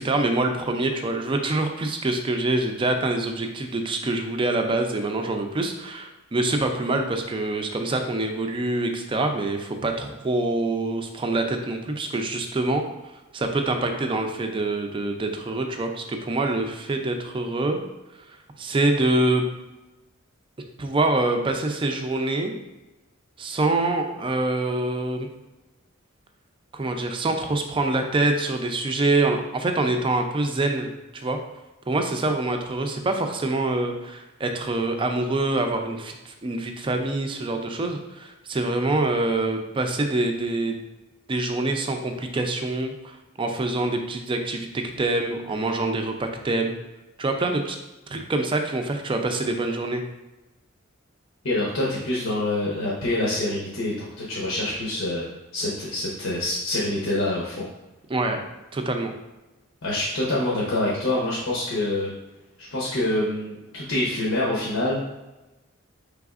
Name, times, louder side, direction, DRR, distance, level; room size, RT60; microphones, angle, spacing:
voice 1, 0.0-12.8 13.3-17.8 18.6-19.5 20.8-22.5 23.4-25.3 26.7-31.4 31.9-40.8 41.3-46.8 47.2-47.8 48.1-50.0 58.1-58.4 58.7-59.1, right 2 dB, 25° right, 5 dB, 0.4 m, -25 dB
voice 2, 51.4-55.3 55.5-57.7 59.8-62.1 62.6-65.0, left 1 dB, 80° left, -6 dB, 0.8 m, -26 dB
4.9 x 3.4 x 2.4 m, 1.0 s
head